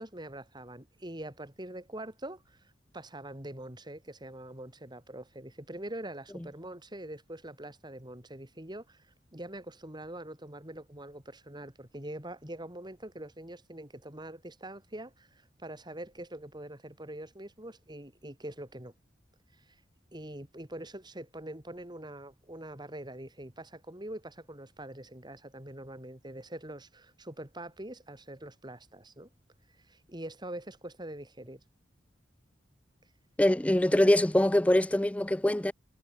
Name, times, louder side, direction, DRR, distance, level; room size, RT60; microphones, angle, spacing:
voice 1, 0.0-2.6 2.9-9.0 9.3-18.9 19.7-19.8 20.1-29.3 29.9-31.6, right 1 dB, 25° right, 4.6 m, -44 dB
voice 2, 33.4-35.7, left 1 dB, 5° left, 0.4 m, -23 dB
head